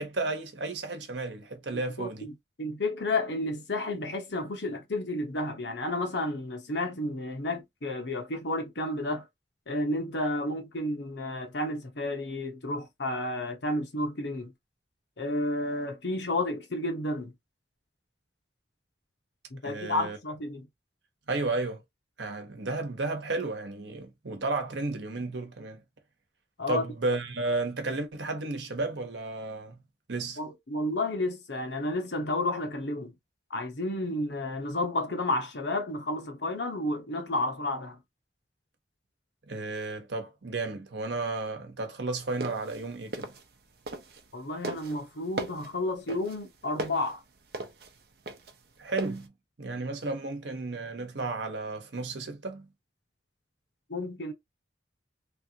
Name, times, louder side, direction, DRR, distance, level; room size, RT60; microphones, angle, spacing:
voice 1, 0.0-2.3 19.6-20.2 21.3-21.8 22.2-25.8 26.7-29.8 30.1-30.4 39.5-43.3 48.8-49.3 49.6-52.7, right 3 dB, 80° right, 1.0 m, -33 dB
voice 2, 2.0-9.3 9.7-14.5 15.2-17.3 19.5-20.7 26.6-26.8 30.4-33.1 33.5-38.0 44.3-47.2 53.9-54.3, left 2 dB, 70° left, 1.0 m, -31 dB
sound 1, 42.2-44.3 44.6-49.3, right 2 dB, 60° right, 0.7 m, -37 dB
3.3 x 2.5 x 2.8 m
head